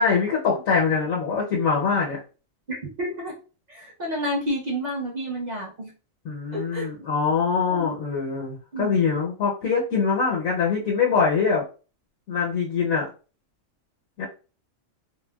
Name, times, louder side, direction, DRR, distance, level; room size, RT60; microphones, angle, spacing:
voice 1, 0.0-2.2 6.2-11.6 12.3-13.1 14.2-14.3, left 5 dB, 80° left, -3 dB, 1.2 m, -23 dB
voice 2, 2.7-3.3 3.7-5.9 6.5-6.9 7.7-8.0 8.7-9.0, equal, 35° right, -3 dB, 0.9 m, -30 dB
3.6 x 2.2 x 2.2 m, 0.35 s
omnidirectional pair, 1.4 m